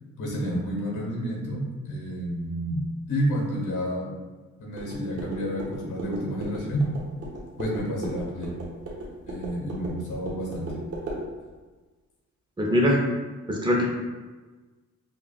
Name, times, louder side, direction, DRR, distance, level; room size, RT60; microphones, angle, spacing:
voice 1, 0.2-4.1 4.6-6.9 7.6-8.5 9.3-10.8, equal, 85° left, -2 dB, 1.2 m, -30 dB
sound 1, 4.7-11.2, right 1 dB, 50° right, 1.1 m, -37 dB
voice 2, 12.6-13.0 13.5-13.8, equal, 15° right, -2 dB, 0.7 m, -21 dB
5.7 x 2.4 x 2.4 m, 1.3 s
wide cardioid pair, 145°, 30 cm